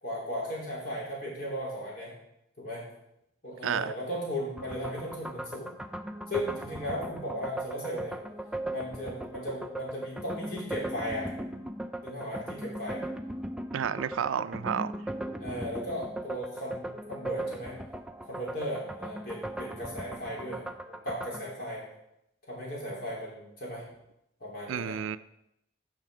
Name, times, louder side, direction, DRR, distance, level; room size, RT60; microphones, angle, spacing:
voice 1, 0.0-2.1 2.6-2.8 3.4-5.8 6.3-8.2 8.7-11.3 12.0-13.0 15.4-17.8 18.3-21.8 22.5-23.8 24.4-25.0, equal, 50° left, -4 dB, 3.3 m, -36 dB
voice 2, 3.6-3.9 13.7-14.9 24.7-25.2, right 8 dB, 85° right, 15 dB, 0.4 m, -30 dB
sound 1, 4.6-21.4, right 1 dB, 5° right, 0.3 m, -38 dB
9.1 x 5.7 x 4.9 m, 0.81 s
head